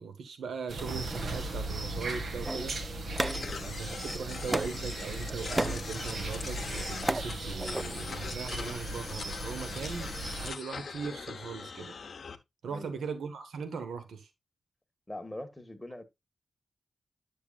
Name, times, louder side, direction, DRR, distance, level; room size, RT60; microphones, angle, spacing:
voice 1, 0.0-2.7 3.6-11.9 12.6-14.3, right 5 dB, 90° right, 1.4 m, -39 dB
sound 1, 0.7-10.5, right 2 dB, 70° right, 2.0 m, -37 dB
sound 2, 2.4-4.0 4.5-4.9 5.3-5.9 6.6-7.3 7.6-7.8, right 1 dB, 15° right, 0.5 m, -33 dB
sound 3, 3.2-12.4, left 5 dB, 60° left, 1.0 m, -42 dB
voice 2, 12.6-13.1 15.1-16.0, left 1 dB, 10° left, 1.4 m, -42 dB
9.4 x 7.0 x 2.4 m
cardioid pair, 80°, 0 cm